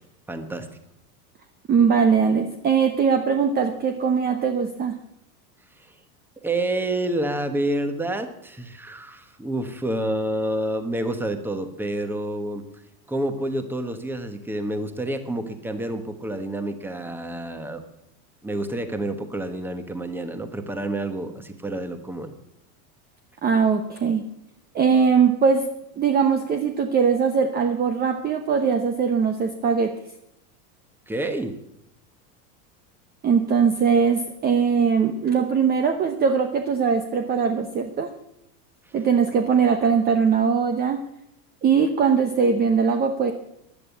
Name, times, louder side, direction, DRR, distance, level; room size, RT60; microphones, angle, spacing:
voice 1, 0.3-0.7 5.8-5.9 6.4-12.7 13.1-17.8 18.4-22.3 31.1-31.6, right 1 dB, 5° right, 8 dB, 1.2 m, -28 dB
voice 2, 1.7-4.9 23.4-24.2 24.7-25.7 26.0-29.9 33.2-38.1 38.9-41.0 41.6-43.3, right 6 dB, 20° right, 7 dB, 0.9 m, -21 dB
15.5 x 11.0 x 8.4 m, 0.80 s
supercardioid pair, 150°, 47 cm